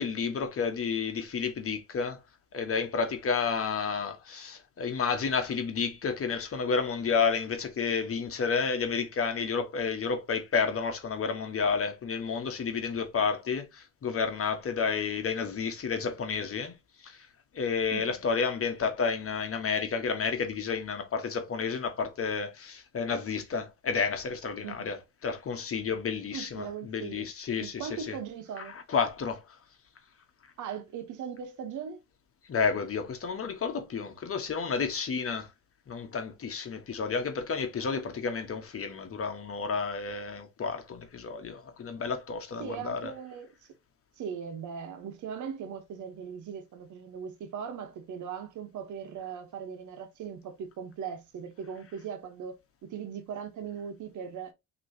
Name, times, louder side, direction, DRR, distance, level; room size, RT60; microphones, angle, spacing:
voice 1, 0.0-2.2 2.5-16.7 17.0-17.2 17.5-28.2 28.6-29.4 32.5-35.5 35.9-43.2, left 5 dB, 50° left, 1.2 m, -31 dB
voice 2, 26.3-27.3 27.6-28.7 30.6-32.0 37.9-38.1 42.6-43.5 44.2-54.5, right 7 dB, 75° right, 1.1 m, -39 dB
6.0 x 3.1 x 2.8 m
cardioid pair, 90°, 30 cm